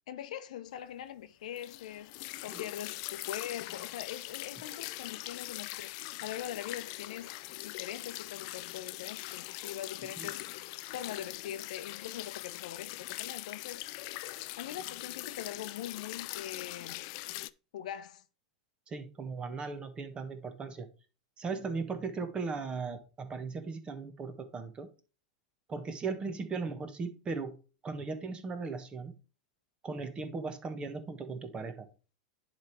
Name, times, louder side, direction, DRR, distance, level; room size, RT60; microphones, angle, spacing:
voice 1, 0.1-7.4 7.6-14.0 14.6-17.0 17.7-18.2, left 11 dB, 70° left, 0.9 m, -42 dB
sound 1, 1.6-17.5, left 19 dB, 55° left, 0.4 m, -42 dB
voice 2, 18.9-20.9 21.4-24.9 25.7-27.6 27.8-29.2 29.8-31.9, right 4 dB, 25° right, 1.4 m, -37 dB
10.5 x 3.6 x 4.7 m
hypercardioid pair, 105°, 4 cm